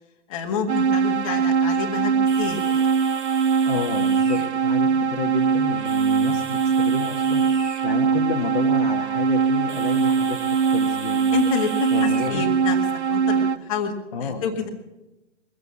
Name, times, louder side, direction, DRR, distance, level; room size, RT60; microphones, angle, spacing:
voice 1, 0.3-2.9 4.4-4.5 4.8-5.0 11.3-13.9 14.2-14.7, left 6 dB, 30° left, 3 dB, 1.9 m, -29 dB
sound 1, 0.7-13.6, right 6 dB, 65° right, 0.7 m, -22 dB
sound 2, 2.3-13.1, right 2 dB, 80° right, 3.2 m, -41 dB
voice 2, 3.6-7.5 7.8-10.4 10.7-11.2 11.9-12.4 14.1-14.4, left 5 dB, 45° left, 1 dB, 1.6 m, -30 dB
22.5 x 8.4 x 6.9 m, 1.0 s
figure-of-eight pair, 140°, 36 cm